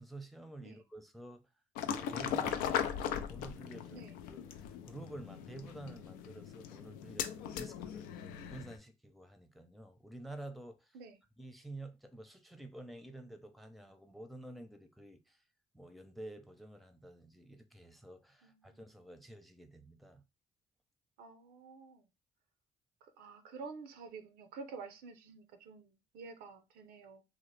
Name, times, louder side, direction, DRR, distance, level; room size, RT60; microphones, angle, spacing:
voice 1, 0.0-1.4 1.8-2.8 3.3-11.0 11.4-15.4 15.7-20.2, right 1 dB, ahead, 0.6 m, -50 dB
sound 1, 1.8-8.8, left 9 dB, 85° left, 0.4 m, -39 dB
voice 2, 18.4-18.8 21.2-22.0 23.0-27.2, right 4 dB, 80° right, 0.5 m, -50 dB
2.8 x 2.0 x 3.2 m
supercardioid pair, 60°, 15 cm